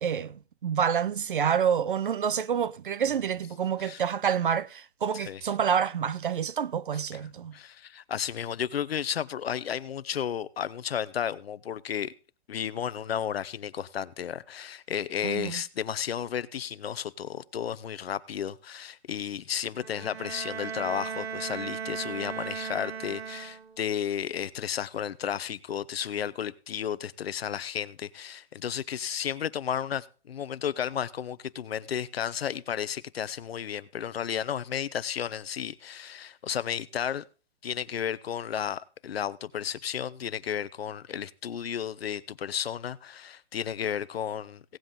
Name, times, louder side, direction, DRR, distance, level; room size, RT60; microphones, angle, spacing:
voice 1, 0.0-7.6 15.2-15.6, right 8 dB, 50° right, 0.5 m, -28 dB
voice 2, 7.5-12.1 12.5-37.2 37.6-44.8, left 9 dB, 65° left, 0.8 m, -33 dB
Bowed string instrument, 19.8-23.9, right 6 dB, 70° right, 1.5 m, -37 dB
17.0 x 7.8 x 3.7 m
hypercardioid pair, 175°, 33 cm